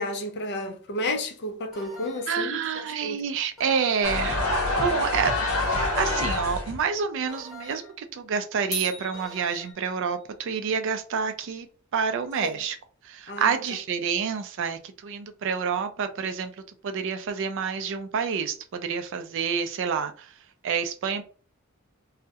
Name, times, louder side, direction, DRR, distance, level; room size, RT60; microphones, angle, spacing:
voice 1, 0.0-2.6 3.0-3.2 13.3-13.6, left 1 dB, 50° left, 0.5 m, -31 dB
sound 1, 1.7-2.5 3.6-4.3 5.4-6.2 7.3-8.0 9.1-9.7, right 2 dB, ahead, 1.1 m, -44 dB
voice 2, 2.3-4.4 4.7-11.7 11.9-12.8 13.0-16.5 16.8-20.3 20.6-21.2, right 6 dB, 60° right, 0.4 m, -28 dB
sound 2, 4.0-6.8, left 2 dB, 75° left, 0.9 m, -26 dB
sound 3, 8.7-10.3, right 2 dB, 15° left, 0.7 m, -36 dB
2.3 x 2.0 x 2.7 m
head